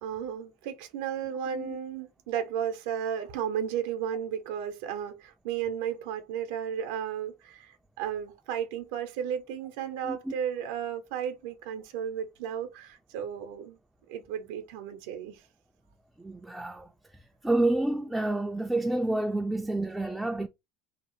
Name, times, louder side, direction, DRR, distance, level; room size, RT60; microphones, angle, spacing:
voice 1, 0.0-13.8 14.1-15.4, right 9 dB, 75° right, 0.6 m, -34 dB
voice 2, 16.2-16.9 17.4-20.5, right 2 dB, 5° right, 0.4 m, -29 dB
2.8 x 2.0 x 3.0 m
hypercardioid pair, 85°, 0 cm